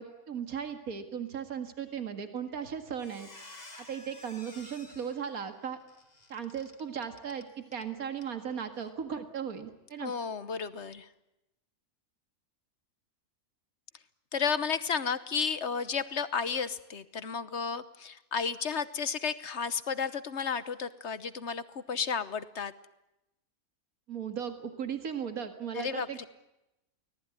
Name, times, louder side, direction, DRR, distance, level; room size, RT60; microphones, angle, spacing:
voice 1, 0.0-3.3 3.8-5.8 6.3-10.1 24.1-26.3, right 7 dB, 75° right, 7 dB, 2.3 m, -37 dB
Squeak, 2.4-2.6 2.9-7.9 8.2-8.3 8.7-8.9, left 2 dB, 25° left, 2.6 m, -52 dB
voice 2, 10.0-11.1 14.3-22.7 25.7-26.3, left 6 dB, 50° left, 14 dB, 1.3 m, -33 dB
25.0 x 18.5 x 9.7 m, 0.92 s
omnidirectional pair, 1.5 m